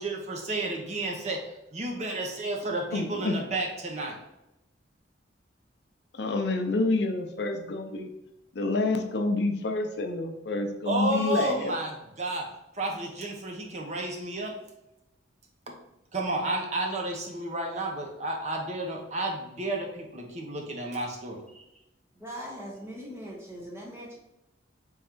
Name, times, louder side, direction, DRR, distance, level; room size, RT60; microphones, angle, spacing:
voice 1, 0.0-1.4 1.7-4.2 10.9-12.5 12.7-14.6 15.7-15.8 16.1-21.6, right 2 dB, 35° right, 1 dB, 0.7 m, -31 dB
voice 2, 2.9-3.3 6.2-8.1 8.5-11.7, left 2 dB, 65° left, 5 dB, 0.5 m, -28 dB
voice 3, 12.9-13.3 20.6-20.7 22.1-24.2, equal, 15° right, -3 dB, 1.1 m, -42 dB
3.7 x 3.2 x 4.4 m, 0.89 s
head